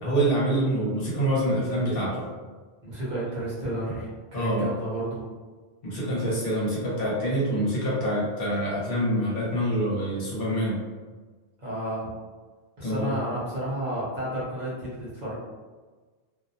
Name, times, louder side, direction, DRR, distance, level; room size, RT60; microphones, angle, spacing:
voice 1, 0.0-2.2 4.3-4.7 5.8-10.8 12.8-13.2, right 1 dB, 60° left, -6 dB, 0.9 m, -26 dB
voice 2, 2.8-5.2 11.6-12.1 12.8-15.3, right 1 dB, 45° right, -8 dB, 0.8 m, -31 dB
2.3 x 2.1 x 2.6 m, 1.4 s
omnidirectional pair, 1.1 m